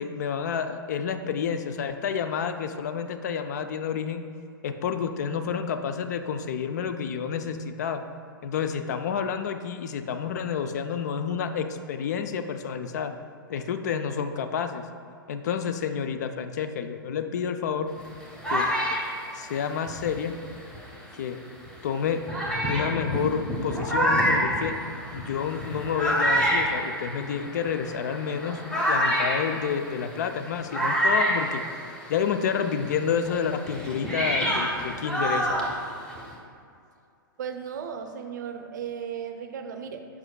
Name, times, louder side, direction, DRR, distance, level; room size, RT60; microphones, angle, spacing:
voice 1, 0.0-4.2 4.6-8.0 8.4-13.1 13.5-14.9 15.3-17.9 18.5-18.7 19.3-20.3 21.2-21.4 21.8-22.3 22.7-24.8 25.1-28.6 28.9-31.6 32.1-35.6, left 7 dB, 50° left, 8 dB, 0.4 m, -29 dB
sound 1, 18.0-21.0 21.7-21.8 22.3-32.3 32.6-36.3, equal, 5° left, 1.0 m, -27 dB
voice 2, 37.4-40.1, right 7 dB, 55° right, 6 dB, 0.5 m, -35 dB
7.6 x 5.6 x 2.3 m, 2.3 s
figure-of-eight pair, 110°, 12 cm